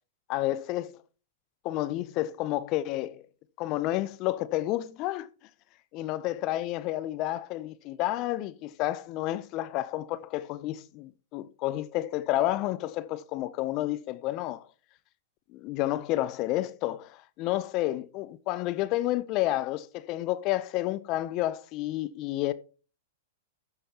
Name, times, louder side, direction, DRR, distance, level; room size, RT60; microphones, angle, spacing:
voice 1, 0.3-1.0 1.6-3.2 3.6-5.3 5.9-14.7 15.5-22.5, left 15 dB, 40° left, 0.6 m, -30 dB
13.5 x 5.7 x 2.9 m
hypercardioid pair, 115°, 0 cm